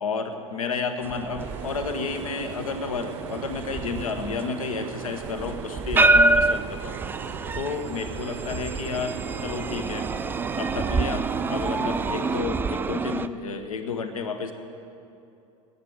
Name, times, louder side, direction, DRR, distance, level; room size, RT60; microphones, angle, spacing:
voice 1, 0.0-7.0 7.5-10.1 10.6-14.5, left 5 dB, 75° left, 8 dB, 0.9 m, -31 dB
sound 1, 1.0-13.3, right 2 dB, 10° right, 0.3 m, -27 dB
sound 2, 1.4-12.4, right 10 dB, 55° right, 0.6 m, -39 dB
13.0 x 9.3 x 9.2 m, 2.7 s
figure-of-eight pair, 70°, 18 cm